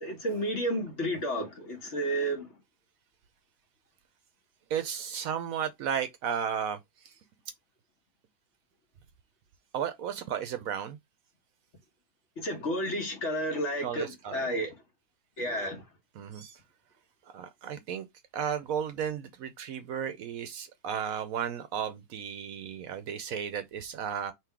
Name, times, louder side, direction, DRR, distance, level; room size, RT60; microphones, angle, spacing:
voice 1, 0.0-2.5 12.4-14.7 15.4-15.8, right 1 dB, 50° left, 1.5 m, -31 dB
voice 2, 4.7-7.1 9.7-11.0 13.8-14.5 16.1-16.6 17.3-18.1 18.3-24.3, right 8 dB, 70° right, 0.9 m, -34 dB
3.7 x 2.9 x 4.6 m
omnidirectional pair, 1.7 m